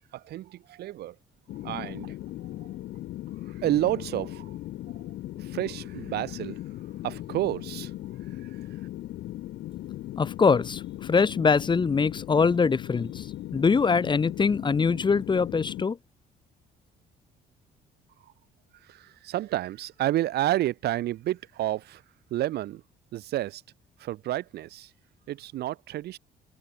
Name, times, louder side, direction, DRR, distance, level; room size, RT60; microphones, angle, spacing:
voice 1, 0.1-1.2 1.6-2.2 3.5-4.6 5.4-6.6 7.0-7.9 8.4-8.5 18.8-22.0 22.3-22.8 23.1-23.6 24.0-24.9 25.3-26.2, right 14 dB, 70° right, 6.9 m, -30 dB
sound 1, 1.5-15.9, left 14 dB, 75° left, 7.5 m, -38 dB
voice 2, 10.2-13.3 13.5-16.0, left 5 dB, 25° left, 1.9 m, -23 dB
cardioid pair, 110°, 17 cm